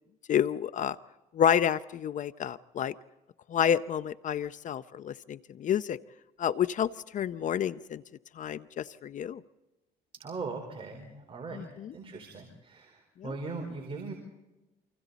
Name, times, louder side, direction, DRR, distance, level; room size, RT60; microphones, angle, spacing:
voice 1, 0.3-1.0 1.3-2.9 3.5-6.0 6.4-8.0 8.4-9.4 11.5-11.9 13.2-13.3, left 9 dB, 50° left, 15 dB, 0.6 m, -29 dB
voice 2, 10.2-11.7 11.9-14.1, right 3 dB, 35° right, 2 dB, 4.3 m, -39 dB
28.5 x 25.5 x 4.1 m, 1.0 s
cardioid pair, 110°, 17 cm